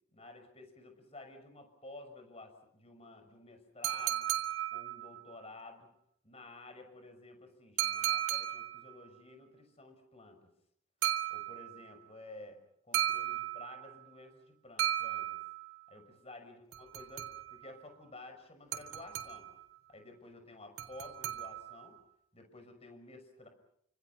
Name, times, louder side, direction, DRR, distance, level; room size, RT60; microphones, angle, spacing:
voice 1, 0.1-4.3 4.7-5.9 6.2-10.4 11.3-12.6 12.8-15.4 15.9-19.5 19.9-22.0 22.3-23.5, left 2 dB, 30° left, 6 dB, 6.4 m, -52 dB
sound 1, 3.8-5.3 7.8-8.9 11.0-11.9 12.9-14.0 14.8-15.8 16.7-17.7 18.7-19.6 20.8-21.9, right 12 dB, 90° right, 3.6 m, -35 dB
29.0 x 27.5 x 5.7 m, 0.71 s
head